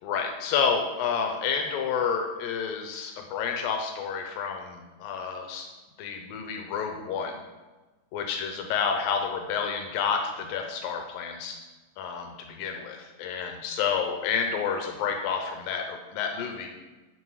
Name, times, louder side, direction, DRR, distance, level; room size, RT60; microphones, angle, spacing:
voice 1, 0.0-5.7 6.0-7.4 8.1-11.6 12.0-16.7, left 6 dB, 85° left, 4 dB, 2.5 m, -29 dB
11.5 x 5.5 x 4.8 m, 1.2 s
omnidirectional pair, 4.0 m